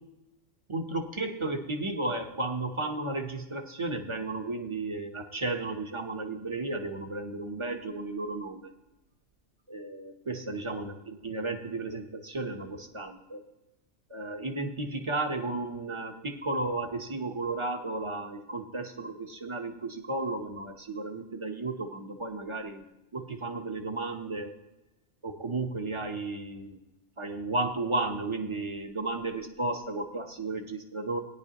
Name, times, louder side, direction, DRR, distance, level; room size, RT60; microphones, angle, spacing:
voice 1, 0.7-8.7 9.7-13.4 14.1-22.8 23.1-24.5 25.2-26.8 27.2-31.2, right 2 dB, 25° right, 4 dB, 1.0 m, -33 dB
17.5 x 10.0 x 3.0 m, 0.96 s
omnidirectional pair, 1.3 m